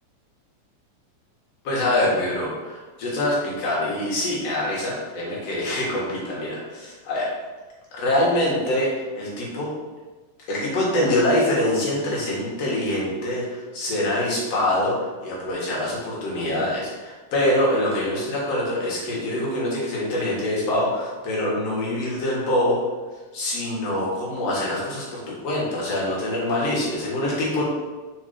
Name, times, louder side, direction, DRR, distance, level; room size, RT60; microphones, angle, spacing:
voice 1, 1.6-7.3 7.9-9.7 10.5-22.8 23.3-27.7, left 1 dB, 60° left, -5 dB, 2.6 m, -24 dB
5.0 x 4.5 x 4.3 m, 1.3 s
omnidirectional pair, 3.4 m